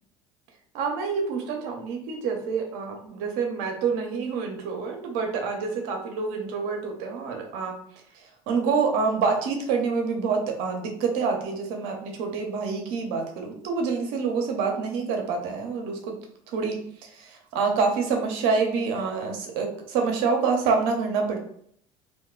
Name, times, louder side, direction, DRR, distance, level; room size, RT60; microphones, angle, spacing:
voice 1, 0.7-7.7 8.1-16.2 16.5-21.4, right 5 dB, 75° right, 2 dB, 0.9 m, -27 dB
2.6 x 2.3 x 3.7 m, 0.66 s
supercardioid pair, 85°, 16 cm